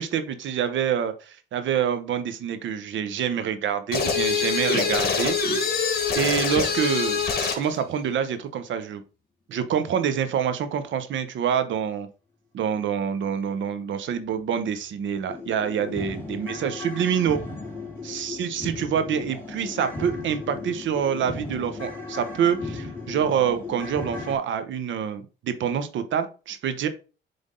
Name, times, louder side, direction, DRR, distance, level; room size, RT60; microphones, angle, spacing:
voice 1, 0.0-5.4 6.1-9.0 9.5-12.1 12.5-17.4 18.0-26.9, right 8 dB, 70° right, 10 dB, 1.0 m, -26 dB
sound 1, 3.9-7.7, left 5 dB, 50° left, 2.0 m, -24 dB
sound 2, 14.4-14.5 14.9-15.0 15.3-24.4, left 3 dB, 10° left, 3.3 m, -36 dB
7.8 x 3.5 x 3.8 m, 0.34 s
cardioid pair, 90°, 20 cm